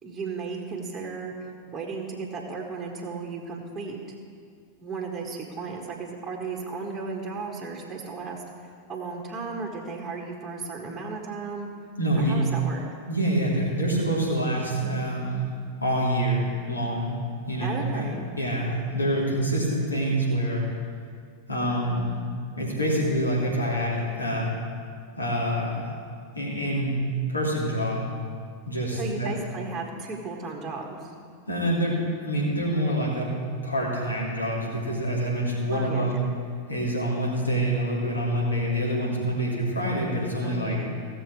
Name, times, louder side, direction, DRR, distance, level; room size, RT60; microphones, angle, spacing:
voice 1, 0.0-4.0 4.8-11.7 12.2-12.8 17.6-18.3 28.9-31.1 35.7-36.2 40.4-40.9, right 4 dB, 15° right, -1 dB, 1.5 m, -35 dB
voice 2, 12.0-12.5 13.1-15.4 15.8-18.1 18.4-20.7 21.5-22.0 22.6-24.5 25.2-25.9 26.3-27.0 27.3-28.1 28.7-29.3 31.5-33.3 33.6-36.2 36.7-40.8, right 1 dB, 80° left, -4 dB, 2.7 m, -26 dB
16.5 x 6.9 x 4.7 m, 2.1 s
figure-of-eight pair, 90°, 0 cm